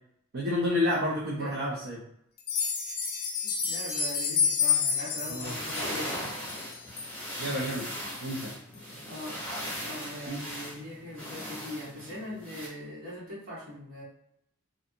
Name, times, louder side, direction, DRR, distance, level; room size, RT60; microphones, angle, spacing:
voice 1, 0.3-2.1 5.3-5.5 7.4-7.8 8.2-8.5 10.3-10.4, left 1 dB, 45° right, -6 dB, 0.5 m, -30 dB
sound 1, 2.4-7.1 7.6-7.7 8.1-8.2 8.7-8.8, left 6 dB, 45° left, 0.5 m, -29 dB
voice 2, 3.4-6.4 9.1-14.0, left 1 dB, 65° right, -7 dB, 1.5 m, -41 dB
sound 2, 5.2-12.7, equal, 5° left, 0.9 m, -38 dB
2.6 x 2.5 x 2.6 m, 0.73 s
head